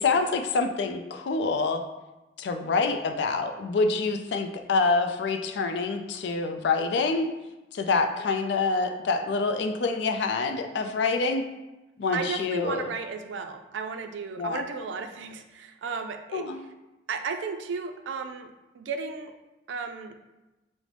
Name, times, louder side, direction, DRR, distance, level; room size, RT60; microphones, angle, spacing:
voice 1, 0.0-1.8 2.4-7.3 7.7-11.4 12.0-12.9 14.4-14.6 16.3-16.6, left 4 dB, 70° left, 6 dB, 0.3 m, -26 dB
voice 2, 12.1-16.4 17.1-19.3 19.7-20.1, right 5 dB, 80° right, 6 dB, 0.4 m, -34 dB
5.1 x 2.0 x 3.2 m, 1.0 s
head